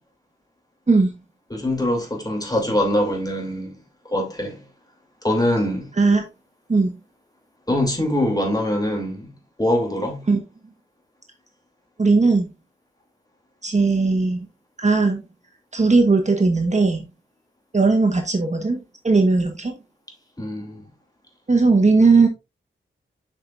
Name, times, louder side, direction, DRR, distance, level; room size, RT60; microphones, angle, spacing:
voice 1, 1.5-3.8 4.1-4.6 5.2-5.9 7.7-9.3 9.6-10.2 20.4-20.8, left 1 dB, 20° left, 2.9 m, -23 dB
voice 2, 12.0-12.5 13.6-14.5 14.8-15.2 15.7-17.1 17.7-18.8 19.0-19.8 21.5-22.3, right 3 dB, 35° right, 1.4 m, -17 dB
7.4 x 6.1 x 2.5 m
wide cardioid pair, 70°, 21 cm